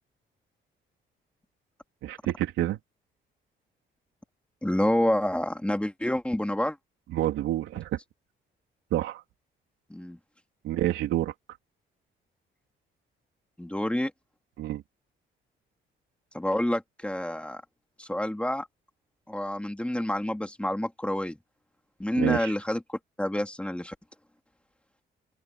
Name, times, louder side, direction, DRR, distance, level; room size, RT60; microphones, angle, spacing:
voice 1, 2.0-2.8 7.1-8.0 8.9-9.2 10.6-11.3 14.6-14.8 22.2-22.5, right 13 dB, 90° right, 3.5 m, -28 dB
voice 2, 4.6-6.8 9.9-10.2 13.6-14.1 16.3-17.6 18.0-18.7 19.3-21.4 22.0-23.9, left 1 dB, 5° left, 2.8 m, -28 dB
cardioid pair, 90°, 20 cm